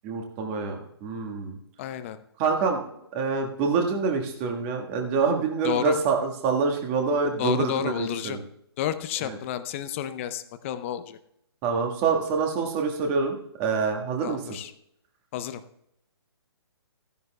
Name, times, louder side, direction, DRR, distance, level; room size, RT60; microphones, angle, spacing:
voice 1, 0.0-1.6 2.4-2.8 3.1-8.4 9.3-9.4 11.6-14.6, right 5 dB, 25° right, 3 dB, 1.5 m, -26 dB
voice 2, 1.8-2.2 5.6-6.0 7.4-8.4 8.8-11.2 14.2-14.7 15.3-15.6, left 10 dB, 30° left, 12 dB, 0.6 m, -31 dB
15.5 x 11.0 x 2.2 m, 0.76 s
figure-of-eight pair, 135°, 14 cm